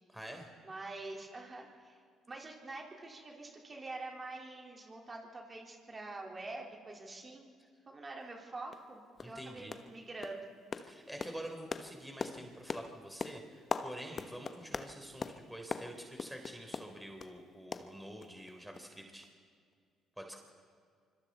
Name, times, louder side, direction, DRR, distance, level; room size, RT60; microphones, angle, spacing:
voice 1, 0.1-0.5 9.2-9.7 10.9-19.3 20.2-20.3, right 1 dB, 5° right, 3 dB, 3.7 m, -47 dB
voice 2, 0.6-7.5 7.9-10.5, right 2 dB, 30° right, 0 dB, 4.1 m, -46 dB
sound 1, 8.2-8.3 8.7-8.9 9.2-9.4 9.7-10.0 10.2-17.4 17.7-18.5 18.7-18.9 19.2-19.3, left 5 dB, 40° left, 1.1 m, -42 dB
25.5 x 25.0 x 4.2 m, 2.2 s
hypercardioid pair, 55°, 0 cm